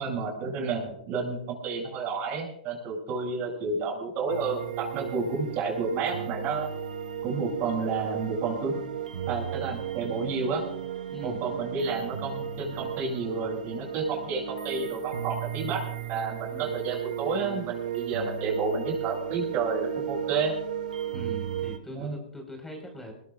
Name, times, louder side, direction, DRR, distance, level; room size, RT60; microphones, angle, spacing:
voice 1, 0.0-6.7 7.2-8.8 9.3-10.6 11.2-15.8 16.1-20.5 21.9-22.2, right 4 dB, 40° right, 0 dB, 7.8 m, -30 dB
sound 1, 4.3-21.8, right 10 dB, 85° right, 1.4 m, -35 dB
voice 2, 11.1-11.4 16.5-16.7 21.1-23.1, equal, 5° left, 1 dB, 5.0 m, -41 dB
23.0 x 20.5 x 2.5 m, 0.69 s
hypercardioid pair, 120°, 4 cm